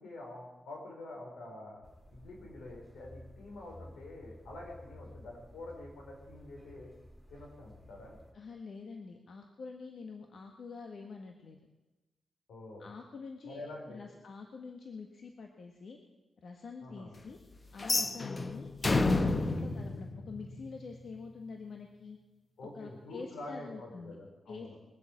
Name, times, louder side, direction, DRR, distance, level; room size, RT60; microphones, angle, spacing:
voice 1, 0.0-1.8 2.1-6.9 7.3-8.2 12.5-12.9 13.4-14.0 16.8-17.1 18.2-18.5 22.6-24.8, left 2 dB, 90° left, -1 dB, 5.0 m, -47 dB
sound 1, 1.8-8.3, left 1 dB, ahead, 2.7 m, -54 dB
voice 2, 8.3-11.6 12.8-16.0 16.4-17.4 17.7-18.7 19.1-22.2 22.7-24.2 24.5-24.7, left 4 dB, 65° left, 3 dB, 1.5 m, -46 dB
sound 2, 17.8-20.9, left 2 dB, 35° left, 1.0 m, -30 dB
21.5 x 8.3 x 7.5 m, 1.1 s
cardioid pair, 80°, 0 cm